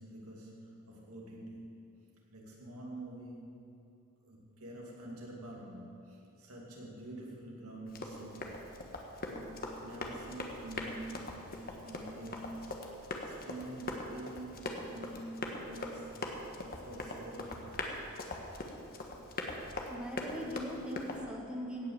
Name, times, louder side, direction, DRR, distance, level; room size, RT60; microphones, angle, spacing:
voice 1, 0.0-1.8 2.3-3.7 4.2-8.6 8.9-12.8 13.0-16.1 16.6-18.0, right 1 dB, 90° right, -2 dB, 2.5 m, -47 dB
Run, 7.9-21.2, left 2 dB, 45° left, 1.3 m, -41 dB
voice 2, 19.9-21.9, equal, 5° right, -1 dB, 1.4 m, -40 dB
16.5 x 5.8 x 8.2 m, 2.6 s
head